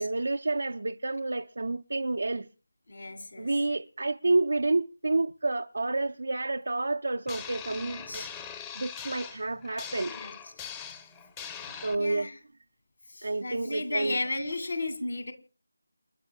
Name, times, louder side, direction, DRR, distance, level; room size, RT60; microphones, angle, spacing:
voice 1, 0.0-2.5 3.4-8.3 8.8-10.2 11.8-12.3 13.2-14.2, right 2 dB, 60° right, 0.6 m, -29 dB
voice 2, 2.9-3.5 7.7-8.3 10.1-10.3 11.6-12.3 13.1-15.3, left 2 dB, 55° left, 2.6 m, -35 dB
sound 1, 7.3-12.0, left 7 dB, 15° left, 1.0 m, -41 dB
28.0 x 11.0 x 2.3 m
figure-of-eight pair, 160°, 0 cm